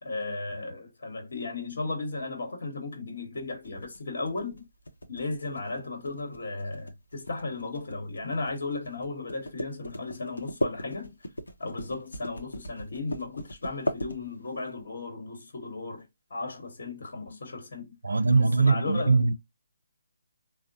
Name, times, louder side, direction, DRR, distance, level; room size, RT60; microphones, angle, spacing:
voice 1, 0.0-4.7 5.1-11.1 11.6-19.3, left 3 dB, 65° left, 1.1 m, -35 dB
sound 1, 3.6-14.7, left 1 dB, 90° left, 0.7 m, -37 dB
voice 2, 18.0-19.3, right 3 dB, 85° right, 0.5 m, -22 dB
3.6 x 2.0 x 2.5 m
figure-of-eight pair, 150°, 0 cm